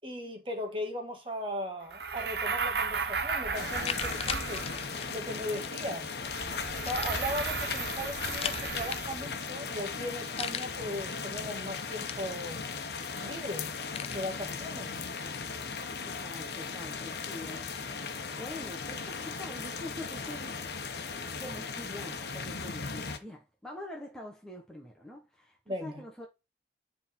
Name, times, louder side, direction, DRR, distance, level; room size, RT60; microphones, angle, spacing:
voice 1, 0.0-4.7 5.1-6.2 6.8-12.6 13.2-13.7 14.0-15.1 25.7-26.0, left 1 dB, 30° right, 1.8 m, -38 dB
sound 1, 1.9-5.2 6.2-9.4, right 5 dB, 65° right, 0.9 m, -35 dB
sound 2, 3.0-3.1 3.5-5.9 6.8-9.4 9.7-9.8 10.0-11.0 11.4-12.7 13.0-14.2, left 8 dB, 35° left, 0.4 m, -40 dB
sound 3, 3.5-23.2, left 5 dB, 65° left, 1.0 m, -37 dB
voice 2, 15.9-20.6 21.4-26.3, left 1 dB, 5° left, 1.2 m, -45 dB
9.7 x 3.8 x 4.4 m
head